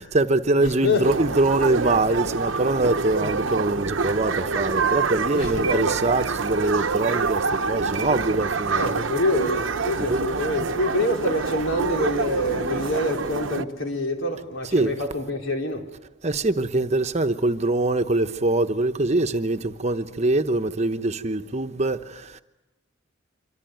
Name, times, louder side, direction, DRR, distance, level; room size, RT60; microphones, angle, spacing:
voice 1, 0.0-9.0 10.0-10.3 14.7-14.9 16.2-22.4, right 2 dB, 35° right, 1.0 m, -23 dB
sound 1, 1.0-13.6, right 4 dB, 75° right, 0.9 m, -26 dB
voice 2, 5.3-6.0 8.7-15.8, left 1 dB, 80° left, 3.9 m, -26 dB
26.0 x 24.5 x 9.2 m
head